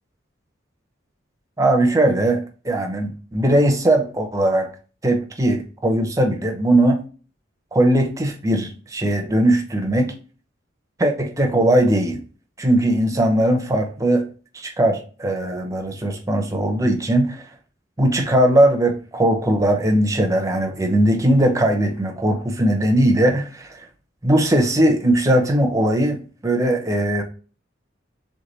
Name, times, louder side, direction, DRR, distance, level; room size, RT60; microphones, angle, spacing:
voice 1, 1.6-4.7 5.0-7.1 7.7-10.1 11.0-12.2 12.6-14.3 14.5-17.4 18.0-23.8 24.2-27.2, right 1 dB, 15° right, 3 dB, 0.7 m, -19 dB
3.4 x 3.3 x 4.0 m, 0.37 s
head